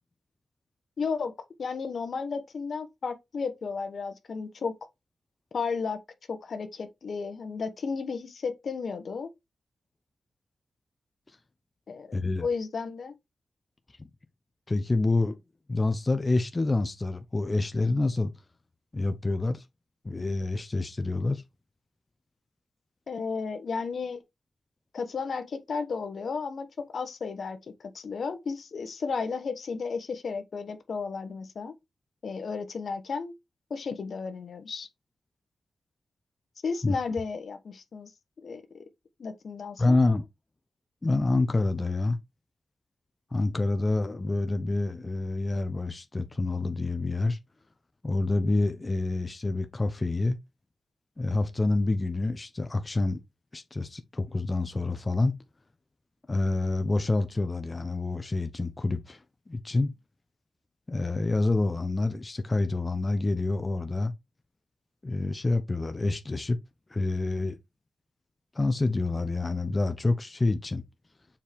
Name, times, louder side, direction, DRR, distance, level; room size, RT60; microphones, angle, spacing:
voice 1, 1.0-1.3 1.6-4.7 5.5-6.0 6.3-9.3 11.9-13.1 23.1-24.2 24.9-31.7 32.2-33.3 33.7-34.9 36.6-38.1 38.4-38.8 39.2-40.0, left 5 dB, 55° left, 1.1 m, -33 dB
voice 2, 12.1-12.5 14.7-15.4 15.7-18.3 18.9-19.6 20.0-21.4 36.8-37.0 39.8-40.3 41.0-42.2 43.3-47.4 48.0-50.4 51.2-53.2 53.5-55.4 56.3-59.2 59.5-59.9 60.9-64.1 65.0-66.6 66.9-67.6 68.5-70.8, left 2 dB, 25° left, 0.7 m, -27 dB
7.2 x 4.5 x 3.5 m
wide cardioid pair, 130°, 0 cm